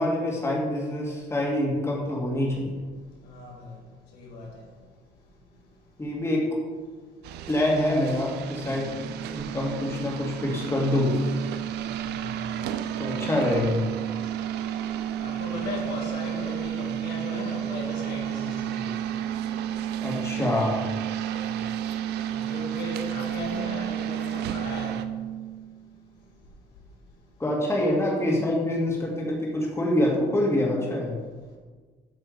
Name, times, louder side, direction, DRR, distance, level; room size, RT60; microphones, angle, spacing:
voice 1, 0.0-2.7 6.0-6.5 7.5-8.9 9.3-11.1 13.0-13.8 20.0-20.9 27.4-31.1, left 1 dB, 15° left, 2.2 m, -25 dB
voice 2, 3.2-3.7 4.1-4.5 11.8-12.2 15.2-18.9 22.3-25.0, left 2 dB, 80° left, 2.1 m, -36 dB
police chopper car, 7.2-25.1, right 9 dB, 80° right, 0.6 m, -38 dB
sound 1, 8.6-26.1, right 11 dB, 20° right, 1.8 m, -32 dB
8.1 x 6.2 x 5.0 m
cardioid pair, 110°, 17 cm